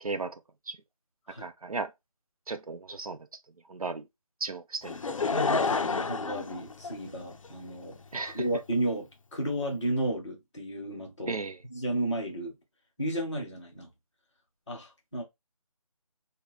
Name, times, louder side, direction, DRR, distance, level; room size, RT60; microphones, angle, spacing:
voice 1, 0.0-0.3 0.7-0.8 1.4-1.9 2.5-3.2 3.7-4.0 4.4-5.0 8.1-8.4 11.3-11.6, right 4 dB, 80° right, 0.6 m, -35 dB
Laughter / Crowd, 4.8-7.5 8.2-8.3, left 4 dB, 65° left, 0.4 m, -29 dB
voice 2, 5.3-8.0 8.3-11.4 11.7-12.5 13.0-13.9 14.7-15.2, right 1 dB, 5° left, 0.5 m, -33 dB
3.1 x 2.2 x 3.8 m
figure-of-eight pair, 155°, 18 cm